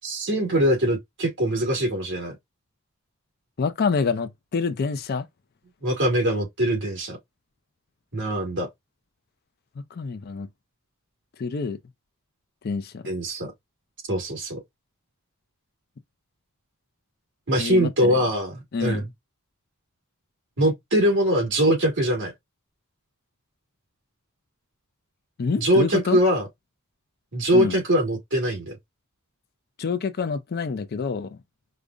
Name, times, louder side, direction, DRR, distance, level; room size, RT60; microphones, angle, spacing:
voice 1, 0.0-2.3 5.8-7.2 8.1-8.7 13.1-13.5 14.1-14.6 17.5-19.0 20.6-22.3 25.6-26.5 27.3-28.8, equal, 55° right, 1.9 m, -22 dB
voice 2, 3.6-5.2 9.8-10.5 11.4-11.8 12.6-13.0 17.6-18.2 18.7-19.0 25.4-26.2 27.5-27.8 29.8-31.4, left 5 dB, 45° left, 0.4 m, -27 dB
5.0 x 2.0 x 2.4 m
head